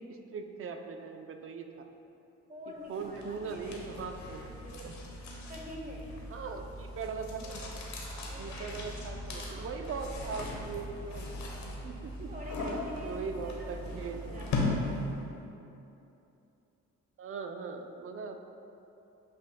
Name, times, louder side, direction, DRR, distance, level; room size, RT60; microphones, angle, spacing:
voice 1, 0.3-1.7 2.9-4.9 6.3-7.6 8.4-12.3 13.0-14.2 17.2-18.4, right 5 dB, 45° right, 5 dB, 0.6 m, -40 dB
voice 2, 2.5-6.2 7.9-8.7 9.3-9.7 12.3-13.8 14.1-15.1, equal, 25° right, 0 dB, 1.0 m, -47 dB
sound 1, 2.9-15.3, left 2 dB, 70° left, 1.1 m, -38 dB
8.7 x 5.2 x 2.2 m, 2.8 s
cardioid pair, 90°, 30 cm